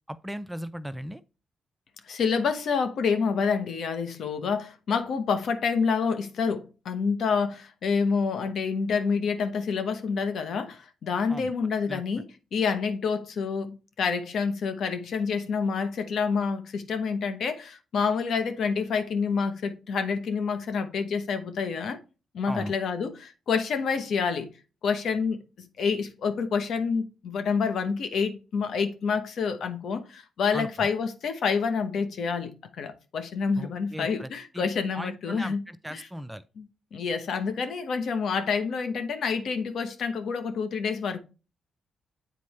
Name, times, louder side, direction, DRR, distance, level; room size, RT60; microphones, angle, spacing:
voice 1, 0.1-1.2 11.3-11.5 11.9-12.0 22.5-22.7 30.5-30.9 33.6-34.7 34.9-36.4, equal, 5° right, 0.5 m, -37 dB
voice 2, 2.0-12.2 12.5-22.0 22.3-24.5 24.8-35.6 35.9-36.1 36.6-36.7 36.9-41.2, left 5 dB, 70° left, 1.0 m, -28 dB
8.2 x 4.2 x 3.2 m
cardioid pair, 65°, 0 cm